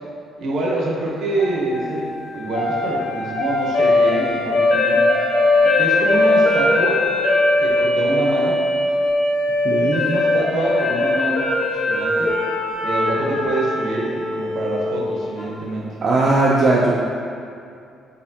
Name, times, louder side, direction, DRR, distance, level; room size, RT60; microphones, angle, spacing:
voice 1, 0.4-5.0 5.6-7.0 7.6-8.6 10.0-12.4 12.8-15.9, right 2 dB, 60° right, -3 dB, 0.7 m, -26 dB
sound 1, 1.4-15.5, left 2 dB, 60° left, 0.9 m, -20 dB
voice 2, 9.6-10.0 16.0-16.9, right 2 dB, 40° right, -5 dB, 0.3 m, -17 dB
4.2 x 3.4 x 2.7 m, 2.4 s
cardioid pair, 165°, 0 cm